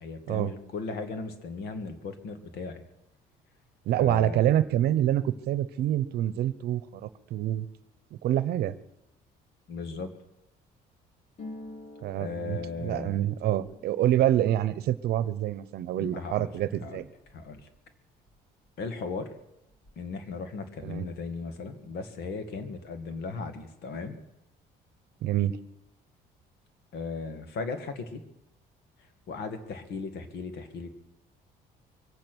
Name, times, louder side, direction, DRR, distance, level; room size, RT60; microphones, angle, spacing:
voice 1, 0.0-2.8 3.9-4.6 9.7-10.1 12.2-13.2 16.0-16.5 16.8-17.0 17.3-17.7 18.8-19.3 20.0-24.2 26.9-28.2 29.3-30.9, left 4 dB, 70° left, 8 dB, 2.0 m, -37 dB
voice 2, 3.9-7.7 8.2-8.7 12.0-17.1 20.8-21.1 25.2-25.6, right 12 dB, 70° right, 16 dB, 0.8 m, -26 dB
Harp, 11.4-18.8 19.1-20.2 20.5-21.1, left 2 dB, 45° left, 3.3 m, -50 dB
23.5 x 8.8 x 6.3 m, 0.88 s
cardioid pair, 110°, 17 cm